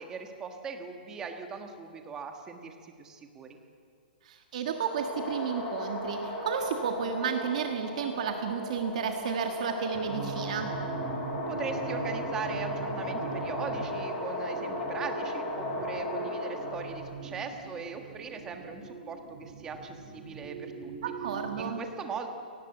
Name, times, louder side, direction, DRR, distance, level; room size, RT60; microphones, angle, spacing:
voice 1, 0.0-3.6 11.5-20.9 21.6-22.3, right 5 dB, 10° right, 5 dB, 1.5 m, -40 dB
voice 2, 4.2-10.7 21.0-21.8, right 7 dB, 45° right, 4 dB, 1.6 m, -32 dB
sound 1, 4.7-17.2, left 1 dB, 10° left, 3.5 m, -36 dB
sound 2, 9.9-21.7, right 5 dB, 25° right, 3.4 m, -41 dB
28.5 x 18.5 x 7.9 m, 2.2 s
hypercardioid pair, 175°, 5 cm